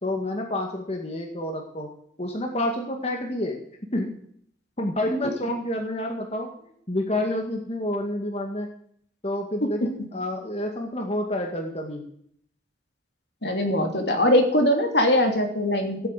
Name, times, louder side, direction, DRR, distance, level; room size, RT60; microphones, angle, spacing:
voice 1, 0.0-1.9 2.2-3.6 3.9-4.1 4.8-6.5 6.9-8.7 9.2-12.0, left 1 dB, 35° left, 2 dB, 2.0 m, -28 dB
voice 2, 13.4-16.1, left 1 dB, 60° left, 4 dB, 3.0 m, -21 dB
16.0 x 9.3 x 8.3 m, 0.64 s
head